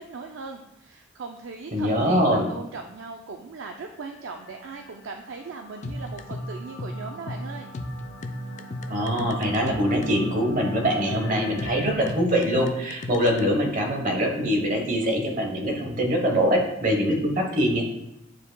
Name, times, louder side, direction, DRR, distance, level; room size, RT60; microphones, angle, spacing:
voice 1, 0.0-7.7, right 4 dB, 70° right, 4 dB, 0.4 m, -39 dB
voice 2, 1.7-2.5 8.9-17.8, equal, 40° right, 1 dB, 1.1 m, -23 dB
sound 1, 3.9-11.8, left 1 dB, 65° left, 1.5 m, -43 dB
sound 2, 5.8-13.4, left 1 dB, 35° left, 0.4 m, -34 dB
9.2 x 4.7 x 2.2 m, 0.90 s
head